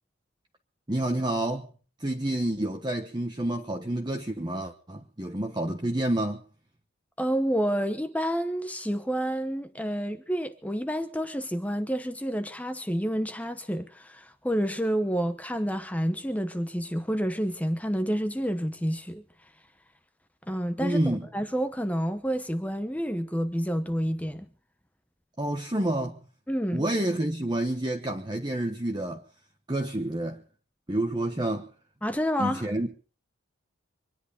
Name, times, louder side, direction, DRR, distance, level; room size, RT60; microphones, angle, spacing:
voice 1, 0.9-1.7 2.0-6.4 20.8-21.3 25.4-26.2 26.7-29.2 29.7-30.4 30.9-31.7 32.4-32.9, right 1 dB, 20° right, 1.2 m, -29 dB
voice 2, 7.2-19.2 20.5-24.5 26.5-26.8 32.0-32.7, equal, 5° left, 0.9 m, -29 dB
25.0 x 11.0 x 5.2 m
head